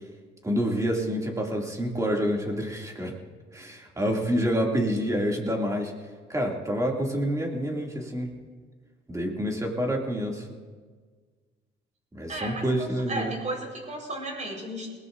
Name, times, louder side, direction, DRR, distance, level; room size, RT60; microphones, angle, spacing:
voice 1, 0.4-3.1 3.5-5.9 6.3-8.3 9.1-10.5 12.1-13.3, equal, 15° right, 0 dB, 2.7 m, -27 dB
voice 2, 12.3-14.9, right 1 dB, 35° right, 0 dB, 4.7 m, -34 dB
20.5 x 18.5 x 2.7 m, 1.5 s
cardioid pair, 90°, 20 cm